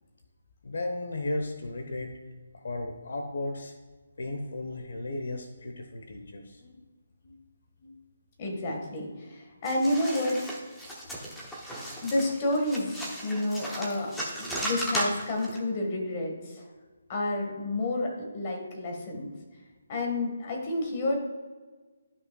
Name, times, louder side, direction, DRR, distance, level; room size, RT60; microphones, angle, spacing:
voice 1, 0.6-2.1 2.5-3.7 4.2-6.6, left 2 dB, 65° left, 5 dB, 0.9 m, -34 dB
voice 2, 8.4-10.6 12.0-16.7 17.1-19.3 19.9-21.2, left 1 dB, 25° left, 1 dB, 1.5 m, -30 dB
sound 1, 9.7-15.6, right 1 dB, 5° left, 0.8 m, -36 dB
12.5 x 5.5 x 2.3 m, 1.3 s
hypercardioid pair, 170°, 0 cm